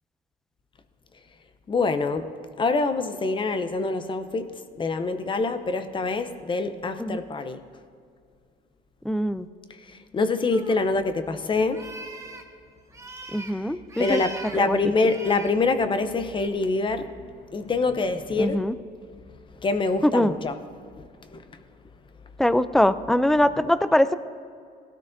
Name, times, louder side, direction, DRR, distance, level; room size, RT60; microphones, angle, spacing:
voice 1, 1.7-2.3 2.6-7.6 9.8-11.9 13.4-13.6 14.0-18.6 19.6-20.5 21.3-21.6, left 3 dB, 30° left, 9 dB, 0.7 m, -25 dB
voice 2, 9.0-9.5 13.3-14.2 14.6-14.8 18.4-18.7 20.0-20.3 22.4-24.2, left 1 dB, ahead, 14 dB, 0.4 m, -22 dB
sound 1, 10.5-10.7 11.7-12.4 12.9-13.5 13.9-14.6 14.9-15.5 16.3-16.5, right 3 dB, 15° right, 1.2 m, -40 dB
18.0 x 13.0 x 2.6 m, 2.3 s
cardioid pair, 110°, 17 cm